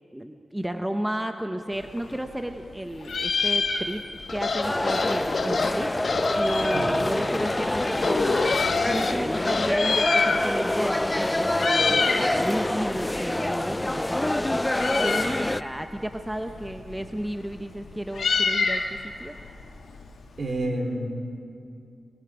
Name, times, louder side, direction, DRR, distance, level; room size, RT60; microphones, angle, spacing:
voice 1, 0.1-4.0 4.3-19.3, right 1 dB, 10° right, 6 dB, 1.0 m, -33 dB
Meow, 1.8-2.7 3.0-4.3 4.6-4.7 4.8-7.0 7.6-8.8 9.6-10.8 11.0-11.3 11.5-12.3 12.6-20.5, left 4 dB, 85° left, 2.0 m, -28 dB
sound 1, 4.3-9.7, left 4 dB, 60° left, 1.3 m, -28 dB
sound 2, 4.6-15.6, left 1 dB, 15° left, 0.4 m, -26 dB
voice 2, 6.7-7.0 20.4-21.1, right 1 dB, 65° right, 1 dB, 3.7 m, -29 dB
23.5 x 22.0 x 5.1 m, 2.6 s
cardioid pair, 65°, 0 cm